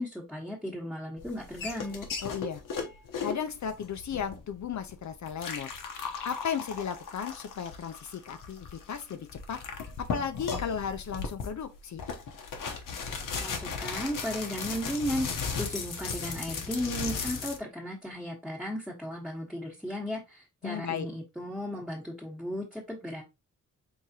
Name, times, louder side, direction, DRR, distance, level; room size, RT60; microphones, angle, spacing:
voice 1, 0.0-2.1 13.4-15.3 15.6-23.2, equal, ahead, 1.2 m, -35 dB
sound 1, 1.2-17.6, left 5 dB, 85° left, 0.9 m, -36 dB
voice 2, 2.2-2.6 3.2-5.7 6.2-9.6 10.1-12.0 20.6-21.1, left 7 dB, 60° left, 0.5 m, -35 dB
4.7 x 3.5 x 2.7 m
wide cardioid pair, 100°, 32 cm